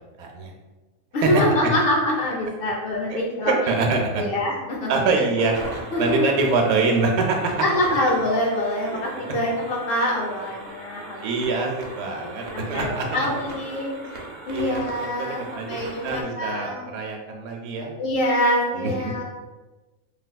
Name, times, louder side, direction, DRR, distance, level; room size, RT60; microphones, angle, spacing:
voice 1, 0.2-0.5 1.2-1.3 3.1-3.2 3.5-4.2 4.9-7.5 8.9-9.0 11.2-12.4 12.7-13.1 14.5-15.8 16.0-17.9 18.7-19.1, right 4 dB, 85° right, 2 dB, 1.1 m, -24 dB
voice 2, 1.1-3.7 4.2-4.9 5.2-5.3 5.9-6.3 7.6-11.2 12.0-13.9 14.5-16.8 18.0-19.2, left 1 dB, 80° left, -1 dB, 0.5 m, -25 dB
sound 1, 5.4-16.2, right 2 dB, 60° right, 0.7 m, -38 dB
3.3 x 2.9 x 2.2 m, 1.2 s
omnidirectional pair, 1.5 m